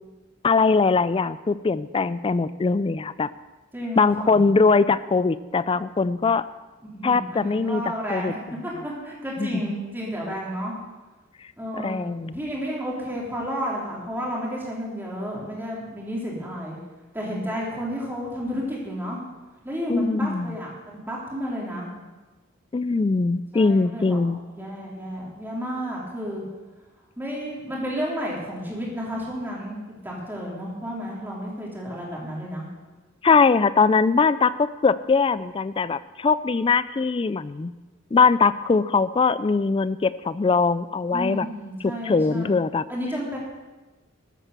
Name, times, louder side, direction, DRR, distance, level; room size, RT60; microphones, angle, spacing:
voice 1, 0.4-3.3 4.0-6.5 7.0-7.8 8.1-8.3 9.4-9.6 11.8-12.4 19.9-20.6 22.7-24.4 33.2-37.7 38.1-41.5 42.0-42.8, left 4 dB, 25° left, 16 dB, 0.3 m, -21 dB
voice 2, 3.7-4.5 6.8-10.7 11.6-16.8 17.1-19.2 19.6-21.9 23.5-24.2 24.5-26.4 27.2-32.6 41.1-42.6 42.9-43.4, equal, 10° right, -4 dB, 3.4 m, -32 dB
13.5 x 8.9 x 6.8 m, 1.2 s
head